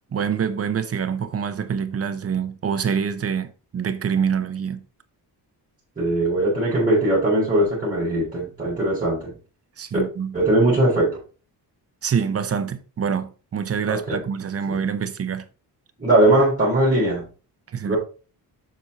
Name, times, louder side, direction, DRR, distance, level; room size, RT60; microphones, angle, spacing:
voice 1, 0.1-4.8 9.8-10.3 12.0-15.4 17.7-18.0, right 7 dB, 35° right, 0.7 m, -26 dB
voice 2, 6.0-9.4 10.3-11.2 13.9-14.2 14.7-14.8 16.0-17.3 17.8-18.0, right 1 dB, 20° right, 4.0 m, -20 dB
7.6 x 5.6 x 4.1 m
wide cardioid pair, 165°, 40 cm